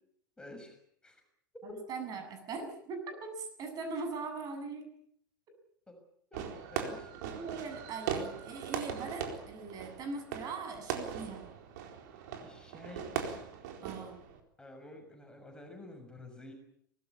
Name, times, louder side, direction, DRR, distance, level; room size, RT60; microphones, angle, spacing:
voice 1, 0.4-0.7 1.0-1.2 1.5-1.8 5.9-6.0 6.3-6.5 6.7-7.1 12.4-13.1 14.6-16.5, left 1 dB, 5° left, 4 dB, 6.5 m, -48 dB
voice 2, 1.6-4.8 7.3-11.4 13.8-14.2, right 4 dB, 35° right, 7 dB, 7.5 m, -41 dB
Fireworks, 6.3-14.4, right 8 dB, 55° right, 4.3 m, -40 dB
24.5 x 19.5 x 8.6 m, 0.67 s
figure-of-eight pair, 90°, 11 cm